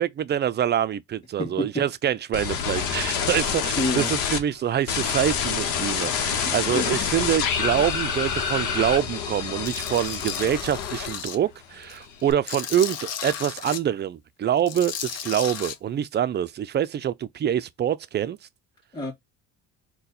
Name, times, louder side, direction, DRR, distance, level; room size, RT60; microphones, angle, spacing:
voice 1, 0.0-18.4, right 10 dB, 30° right, 0.4 m, -25 dB
voice 2, 1.4-1.8 3.8-4.1 6.4-6.9 18.9-19.1, left 1 dB, 10° left, 2.1 m, -29 dB
sound 1, 2.3-4.4 4.9-11.4 11.7-12.3, left 7 dB, 75° left, 1.0 m, -27 dB
Tools, 9.6-11.4 11.8-13.8 14.6-15.7, left 8 dB, 45° left, 0.7 m, -34 dB
4.0 x 2.3 x 4.0 m
supercardioid pair, 90°, 34 cm